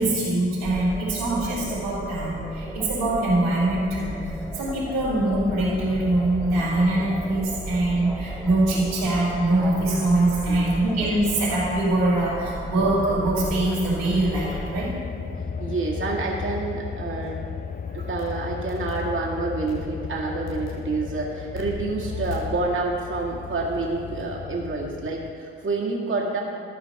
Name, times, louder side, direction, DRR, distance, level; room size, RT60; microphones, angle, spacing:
voice 1, 0.0-14.9, right 2 dB, 85° right, -9 dB, 3.1 m, -23 dB
sound 1, 0.6-14.9, equal, ahead, 1.7 m, -35 dB
sound 2, 5.4-25.3, left 6 dB, 30° left, 0.4 m, -37 dB
voice 2, 15.1-17.4 17.9-26.4, right 3 dB, 40° right, -3 dB, 2.0 m, -28 dB
sound 3, 17.3-17.4 18.2-18.4 18.7-19.1 19.7-20.2 20.5-20.8 21.5-23.0, left 6 dB, 55° left, 1.0 m, -43 dB
12.5 x 5.0 x 6.9 m, 2.3 s
hypercardioid pair, 45°, 32 cm